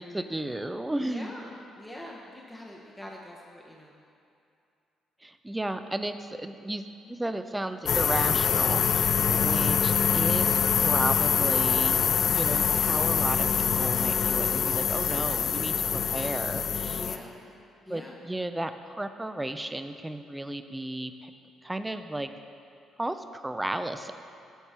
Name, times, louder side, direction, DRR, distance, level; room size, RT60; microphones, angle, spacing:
voice 1, 0.0-1.3 5.2-6.8 7.1-12.0 12.3-17.1 17.9-21.3 21.6-22.3 23.0-24.1, right 1 dB, 15° right, 9 dB, 0.4 m, -34 dB
voice 2, 1.1-4.0 15.9-16.2 16.9-17.4 17.9-18.2, left 1 dB, 15° left, -2 dB, 0.8 m, -45 dB
sound 1, 7.9-17.2, left 7 dB, 60° left, 0.3 m, -25 dB
9.1 x 4.4 x 4.3 m, 2.5 s
hypercardioid pair, 50°, 0 cm